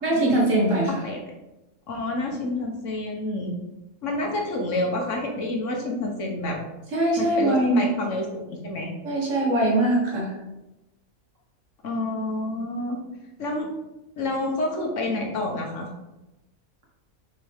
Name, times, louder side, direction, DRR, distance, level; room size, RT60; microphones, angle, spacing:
voice 1, 0.0-1.0 6.9-7.8 9.0-10.4, right 1 dB, 60° right, -3 dB, 2.1 m, -22 dB
voice 2, 1.9-3.5 4.0-6.6 7.2-8.9 11.8-13.0 13.4-13.7 14.2-15.9, left 2 dB, 60° left, 1 dB, 1.3 m, -28 dB
6.6 x 4.5 x 3.5 m, 0.98 s
omnidirectional pair, 1.5 m